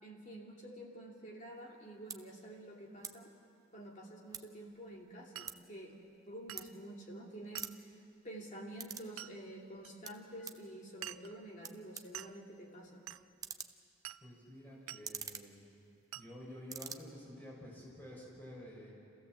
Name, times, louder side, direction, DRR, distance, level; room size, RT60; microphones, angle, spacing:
voice 1, 0.0-3.3 3.7-8.0 8.2-13.1, right 1 dB, 35° left, -1 dB, 2.8 m, -49 dB
sound 1, 1.6-1.7 2.0-2.2 3.0-3.2 3.5-4.7 5.0-7.2 7.4-9.1 9.4-10.7 11.3-11.4 11.6-16.3 16.6-17.0, right 6 dB, 15° right, 0.6 m, -47 dB
Glass, 5.4-5.6 6.5-6.7 7.6-7.8 9.2-9.4 9.8-9.9 11.0-11.4 12.1-12.4 13.1-13.3 14.0-14.3 14.9-15.1 16.1-16.3, right 12 dB, 85° right, 0.5 m, -47 dB
voice 2, 14.2-15.6 16.1-18.9, left 1 dB, 10° left, -5 dB, 6.0 m, -50 dB
27.0 x 15.5 x 7.6 m, 2.5 s
head